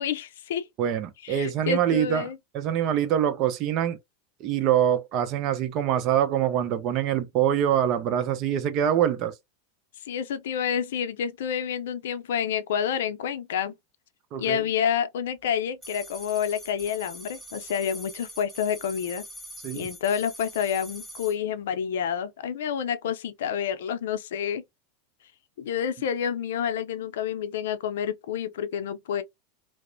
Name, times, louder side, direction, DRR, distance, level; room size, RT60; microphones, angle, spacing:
voice 1, 0.0-0.7 1.2-2.4 10.1-13.7 14.4-19.2 19.7-24.6 25.6-29.2, left 8 dB, 80° left, 0.4 m, -29 dB
voice 2, 0.8-4.0 4.4-9.3 14.3-14.6 19.6-19.9, right 10 dB, 45° right, 0.6 m, -25 dB
sound 1, 15.8-21.3, equal, 5° right, 1.3 m, -43 dB
2.9 x 2.0 x 2.5 m
supercardioid pair, 125°, 0 cm